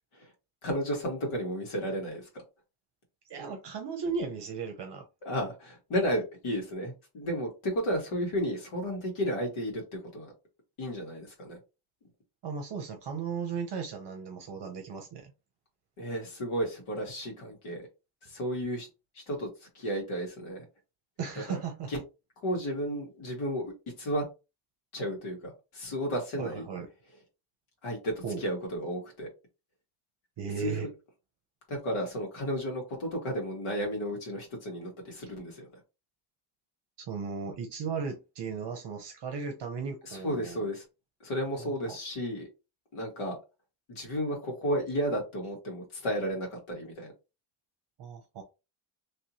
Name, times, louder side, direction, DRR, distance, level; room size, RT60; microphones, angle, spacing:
voice 1, 0.6-2.4 5.2-10.3 10.8-11.6 16.0-17.9 18.2-18.9 19.2-19.5 19.7-20.6 21.5-21.6 21.9-22.0 22.4-24.2 24.9-26.6 27.8-28.1 28.4-29.3 30.6-30.9 31.7-35.7 40.0-40.8 41.2-42.5 42.9-43.4 43.9-47.1, equal, 80° left, 0 dB, 1.7 m, -33 dB
voice 2, 3.3-5.1 12.4-15.3 21.2-21.9 26.4-26.9 28.2-28.4 30.4-30.9 37.1-40.7 41.6-42.0 48.0-48.4, right 5 dB, 55° right, 4 dB, 0.7 m, -36 dB
3.1 x 3.0 x 2.8 m, 0.28 s
wide cardioid pair, 130°, 49 cm